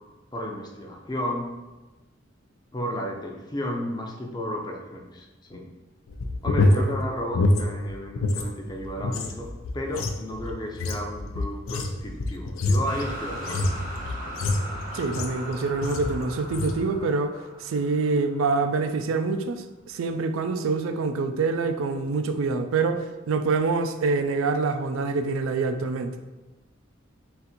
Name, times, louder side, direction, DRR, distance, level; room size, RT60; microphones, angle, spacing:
voice 1, 0.3-1.5 2.7-5.7 6.4-13.7, equal, 20° left, 1 dB, 0.5 m, -33 dB
sound 1, 6.1-8.5 8.8-15.5 15.8-16.2 16.5-16.8, left 2 dB, 90° left, 0.4 m, -26 dB
sound 2, 12.8-18.9, equal, 40° right, 0.7 m, -39 dB
voice 2, 14.9-26.1, right 4 dB, 85° right, 8 dB, 0.4 m, -26 dB
4.0 x 2.6 x 4.1 m, 1.1 s
head